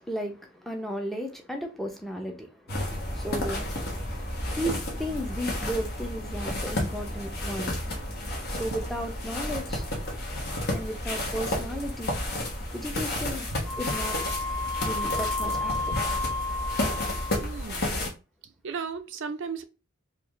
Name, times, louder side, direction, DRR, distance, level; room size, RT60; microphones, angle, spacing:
voice 1, 0.0-3.7 4.5-7.7 8.5-9.9 10.7-12.2 12.7-13.5 13.8-14.2 14.8-15.7, equal, ahead, 0.7 m, -34 dB
sound 1, 2.7-18.1, left 1 dB, 50° left, 1.2 m, -31 dB
Wind instrument woodwind instrument, 13.7-17.6, left 3 dB, 20° left, 1.6 m, -32 dB
voice 2, 17.4-18.0 18.6-19.6, right 5 dB, 60° right, 0.5 m, -35 dB
4.4 x 2.6 x 3.0 m
head